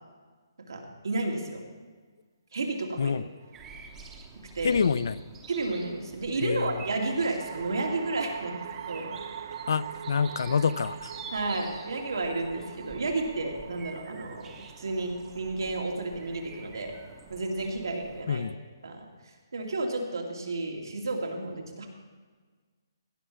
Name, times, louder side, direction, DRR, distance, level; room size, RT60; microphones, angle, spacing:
voice 1, 0.7-1.6 2.5-3.2 4.5-4.8 5.5-8.6 8.9-9.2 11.3-16.9 17.3-18.4 18.8-21.9, right 2 dB, 85° right, 1 dB, 2.3 m, -32 dB
sound 1, 3.4-4.1 6.6-17.9, right 9 dB, 40° right, 0.4 m, -44 dB
sound 2, 3.5-18.2, right 4 dB, 10° right, 0.8 m, -48 dB
voice 2, 4.6-5.2 6.4-6.8 9.7-11.1 18.3-18.6, left 6 dB, 60° left, 17 dB, 0.4 m, -27 dB
16.0 x 5.8 x 6.3 m, 1.5 s
hypercardioid pair, 170°, 2 cm